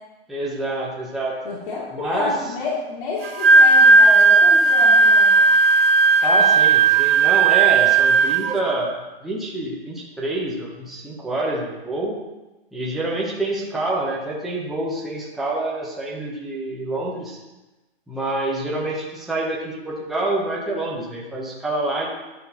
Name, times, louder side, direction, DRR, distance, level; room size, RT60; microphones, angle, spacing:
voice 1, 0.3-1.3 1.9-2.4 6.2-9.0 9.2-12.1 12.7-17.4 18.1-22.1, right 2 dB, ahead, -6 dB, 0.6 m, -27 dB
voice 2, 1.4-5.4, left 3 dB, 55° left, -6 dB, 2.5 m, -29 dB
Wind instrument woodwind instrument, 3.2-8.5, right 4 dB, 70° right, 1.4 m, -14 dB
11.0 x 9.9 x 2.8 m, 1.1 s
hypercardioid pair, 170°, 30 cm